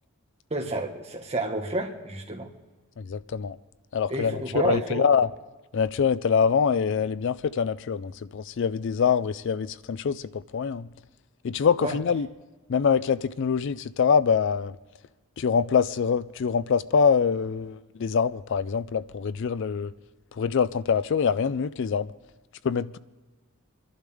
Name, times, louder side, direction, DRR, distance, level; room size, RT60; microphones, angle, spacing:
voice 1, 0.5-2.5 4.1-5.1 11.8-12.0, right 1 dB, 30° right, 1.6 m, -30 dB
voice 2, 3.0-3.6 3.9-5.3 5.7-10.9 11.4-12.3 12.7-14.8 15.4-19.9 20.3-22.1 22.6-23.0, left 6 dB, 55° left, 0.4 m, -24 dB
26.5 x 11.5 x 3.5 m
head